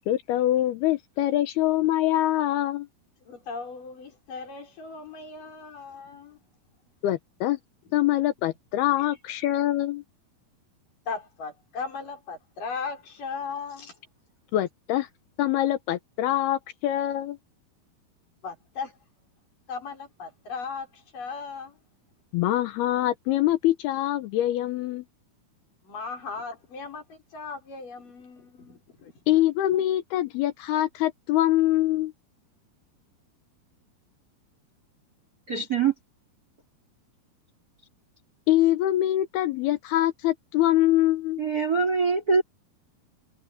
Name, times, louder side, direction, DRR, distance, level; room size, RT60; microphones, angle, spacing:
voice 1, 0.1-2.9 7.0-7.6 7.9-10.0 14.5-15.1 15.4-17.4 22.3-25.0 29.3-32.1 38.5-41.4, left 14 dB, 80° left, 3.0 m, -24 dB
voice 2, 3.2-6.4 9.0-9.1 11.1-14.0 18.4-19.0 19.7-21.8 25.8-29.2, left 5 dB, 55° left, 6.5 m, -37 dB
voice 3, 35.5-35.9 41.4-42.4, right 5 dB, 30° right, 2.1 m, -23 dB
omnidirectional pair, 4.5 m